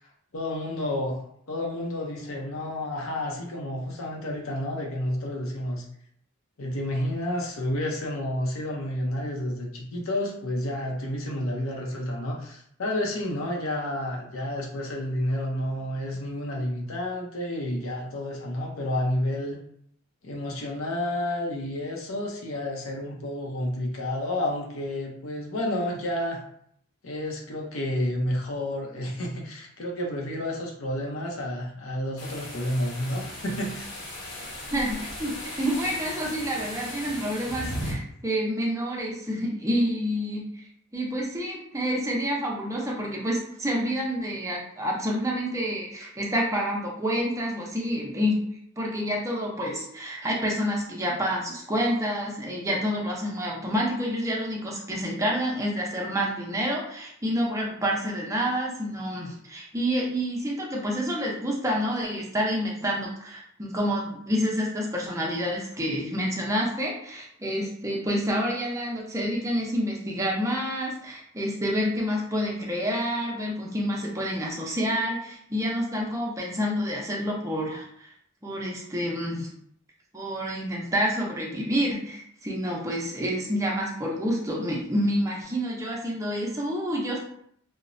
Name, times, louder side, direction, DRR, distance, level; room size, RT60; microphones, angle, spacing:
voice 1, 0.3-5.8 6.6-19.6 20.2-26.4 27.0-33.9, left 1 dB, 75° left, 0 dB, 0.6 m, -30 dB
burza loud and clear, 32.2-37.9, left 1 dB, 60° left, 0.9 m, -37 dB
voice 2, 34.7-40.5 40.9-48.4 48.8-78.1 78.4-79.5 80.1-87.2, equal, 15° right, -2 dB, 0.5 m, -28 dB
3.0 x 2.0 x 2.5 m, 0.68 s
head